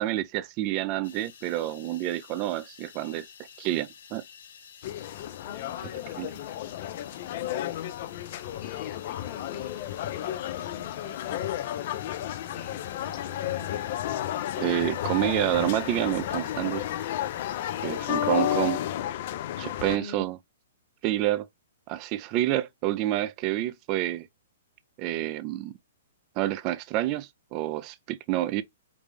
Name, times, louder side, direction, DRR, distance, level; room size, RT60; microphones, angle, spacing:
voice 1, 0.0-3.2 3.6-4.2 6.2-6.3 14.6-16.8 17.8-18.8 19.6-20.4 21.0-21.5 21.9-24.3 25.0-25.7 26.4-28.6, right 14 dB, 35° right, 0.4 m, -28 dB
sound 1, 1.0-18.7, left 7 dB, 80° left, 1.2 m, -51 dB
sound 2, 4.8-20.0, left 12 dB, 50° left, 0.4 m, -32 dB
voice 2, 5.4-7.0 8.6-13.8 19.9-20.3, left 7 dB, 35° left, 1.2 m, -45 dB
5.1 x 2.0 x 3.3 m
hypercardioid pair, 135°, 0 cm